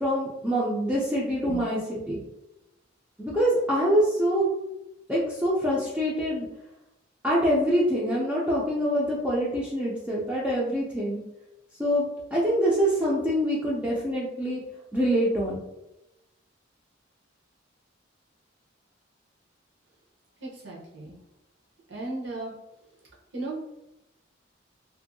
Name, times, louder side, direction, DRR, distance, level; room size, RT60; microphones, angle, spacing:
voice 1, 0.0-2.2 3.2-4.5 5.1-6.5 7.2-11.2 11.8-14.6 14.9-15.6, equal, 5° right, -7 dB, 0.4 m, -25 dB
voice 2, 20.4-21.1 21.9-22.5 23.3-23.6, right 2 dB, 70° right, -5 dB, 0.9 m, -35 dB
2.6 x 2.6 x 2.6 m, 0.92 s
head